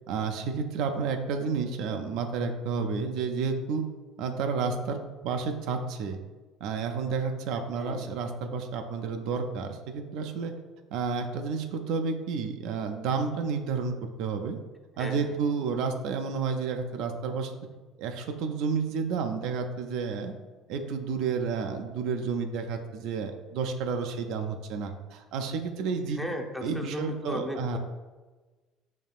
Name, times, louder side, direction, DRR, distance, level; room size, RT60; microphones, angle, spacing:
voice 1, 0.1-3.8 4.2-6.2 6.6-10.5 10.9-14.6 15.0-17.5 18.0-20.3 20.7-26.2 26.6-27.8, right 5 dB, 70° right, 5 dB, 0.4 m, -31 dB
voice 2, 7.6-8.2 15.0-15.3 26.1-27.8, left 1 dB, 5° left, 2 dB, 0.6 m, -36 dB
5.4 x 2.8 x 2.4 m, 1.2 s
supercardioid pair, 80°, 0 cm